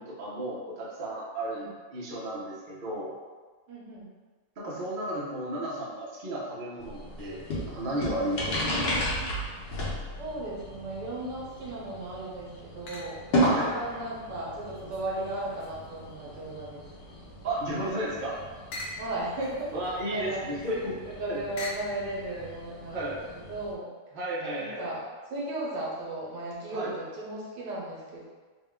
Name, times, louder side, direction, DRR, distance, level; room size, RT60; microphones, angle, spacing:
voice 1, 0.0-3.1 4.6-8.5 13.3-13.7 17.4-18.4 19.7-21.4 22.9-23.2 24.1-24.8 26.7-26.9, right 1 dB, 40° right, -6 dB, 0.8 m, -33 dB
voice 2, 3.7-4.1 10.2-13.2 13.6-16.8 19.0-19.7 20.1-20.4 21.0-23.9 24.5-25.0 25.3-28.2, right 2 dB, 75° right, -6 dB, 1.6 m, -36 dB
sound 1, 6.8-23.7, equal, 85° left, 1.7 m, -35 dB
sound 2, 11.4-11.9 12.9-13.4 13.9-16.6 17.1-22.0, left 2 dB, 65° left, 0.8 m, -45 dB
4.2 x 2.2 x 3.6 m, 1.4 s
omnidirectional pair, 1.9 m